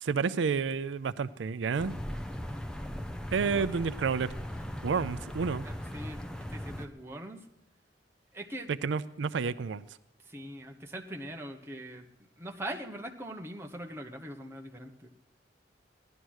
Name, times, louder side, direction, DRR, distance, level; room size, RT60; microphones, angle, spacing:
voice 1, 0.0-1.9 3.3-4.4 4.8-5.7 8.8-9.8, right 5 dB, 80° right, 15 dB, 0.4 m, -30 dB
sound 1, 1.8-6.9, equal, 5° left, 0.6 m, -39 dB
voice 2, 3.4-3.7 4.5-4.7 5.6-7.4 8.3-8.7 10.2-12.1 12.4-15.1, right 1 dB, 15° right, 1 dB, 1.1 m, -42 dB
16.5 x 11.5 x 6.3 m, 0.89 s
head